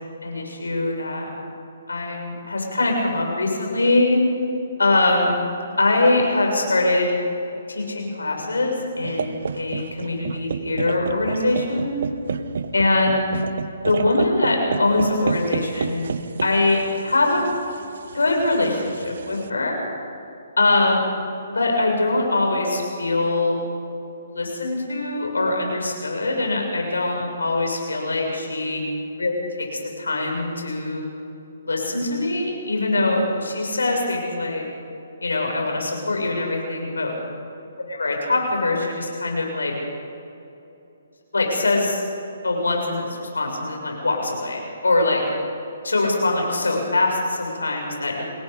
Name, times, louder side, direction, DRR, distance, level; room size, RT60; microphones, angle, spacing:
voice 1, 0.2-1.3 1.9-4.2 4.8-5.4 5.8-7.1 7.7-11.9 12.7-13.2 13.8-16.1 16.4-17.4 18.1-19.8 20.6-21.0 21.5-23.6 24.2-28.8 29.2-29.3 29.6-31.1 31.6-34.6 35.2-37.1 37.9-39.7 41.3-42.0 42.4-45.2 45.8-48.2, left 2 dB, 85° left, 1 dB, 6.7 m, -22 dB
sound 1, 9.0-19.5, right 5 dB, 65° right, 1.0 m, -30 dB
27.5 x 19.5 x 5.4 m, 2.9 s
figure-of-eight pair, 140°, 0 cm